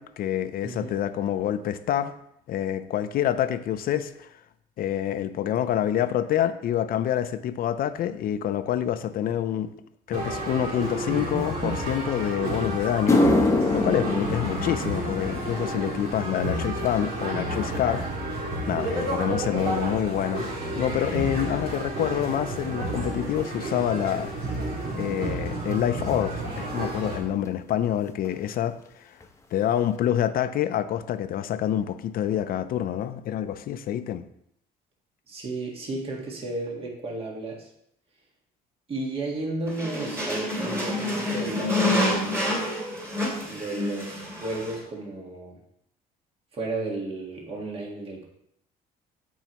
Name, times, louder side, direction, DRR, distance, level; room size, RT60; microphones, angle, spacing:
voice 1, 0.0-2.1 2.5-4.3 4.8-9.7 10.1-18.3 18.7-20.5 20.8-24.6 25.0-29.1 29.5-34.2, left 10 dB, 60° left, 0.6 m, -27 dB
voice 2, 0.6-1.0 35.3-37.7 38.9-42.6 43.5-45.6 46.5-48.2, right 2 dB, 35° right, 1.7 m, -33 dB
sound 1, 10.1-27.2, right 1 dB, 65° right, 2.4 m, -31 dB
sound 2, 12.3-12.4 12.9-21.4 21.7-22.1 22.9-23.0 25.7-25.8 27.4-27.5 27.7-28.0 28.2-28.8 29.2-29.3 29.8-29.9, left 2 dB, 15° left, 0.9 m, -28 dB
sound 3, 39.7-44.8, left 1 dB, 15° right, 2.9 m, -28 dB
13.5 x 4.7 x 3.0 m
cardioid pair, 110°, 17 cm